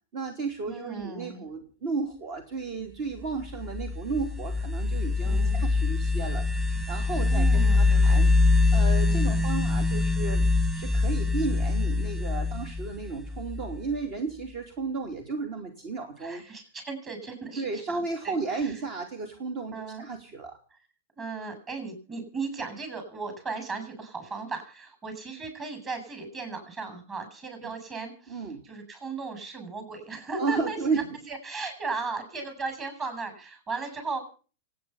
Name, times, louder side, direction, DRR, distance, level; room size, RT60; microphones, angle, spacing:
voice 1, 0.1-8.3 8.7-10.5 10.7-16.4 17.6-20.6 28.3-28.6 30.4-31.1, right 4 dB, 50° right, 6 dB, 3.2 m, -33 dB
voice 2, 0.7-1.4 5.2-5.6 7.1-8.3 9.0-9.4 16.2-18.8 19.7-20.1 21.2-34.2, right 4 dB, 30° right, 8 dB, 7.5 m, -36 dB
sound 1, 3.4-14.0, left 3 dB, 10° right, 1.6 m, -24 dB
26.5 x 9.6 x 5.6 m, 0.40 s
hypercardioid pair, 105°, 0 cm